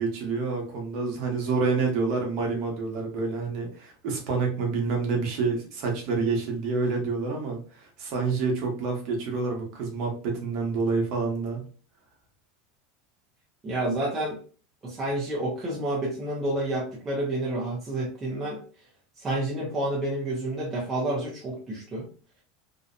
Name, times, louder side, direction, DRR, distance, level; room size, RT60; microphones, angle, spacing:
voice 1, 0.0-11.6, right 4 dB, 40° right, 0 dB, 0.8 m, -28 dB
voice 2, 13.6-14.4 14.8-18.6 19.2-22.1, right 1 dB, 15° right, -5 dB, 0.5 m, -29 dB
2.6 x 2.0 x 2.5 m, 0.40 s
supercardioid pair, 180°, 0 cm